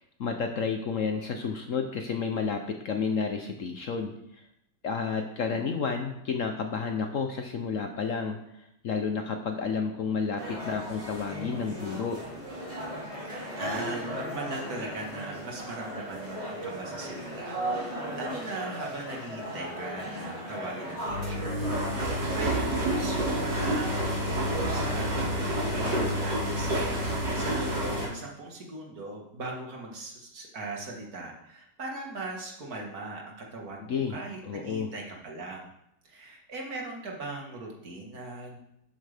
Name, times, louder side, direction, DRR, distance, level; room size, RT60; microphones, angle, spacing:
voice 1, 0.0-4.4 4.8-12.2 33.8-34.9, left 5 dB, 60° left, 5 dB, 1.0 m, -31 dB
sound 1, 10.4-28.0, equal, 25° right, 3.3 m, -37 dB
voice 2, 13.2-22.0 22.3-35.7 36.0-38.6, right 2 dB, 60° right, 0 dB, 2.2 m, -39 dB
sound 2, 21.0-28.1, right 1 dB, 80° right, 3.3 m, -29 dB
12.0 x 7.7 x 3.5 m, 0.80 s
omnidirectional pair, 1.9 m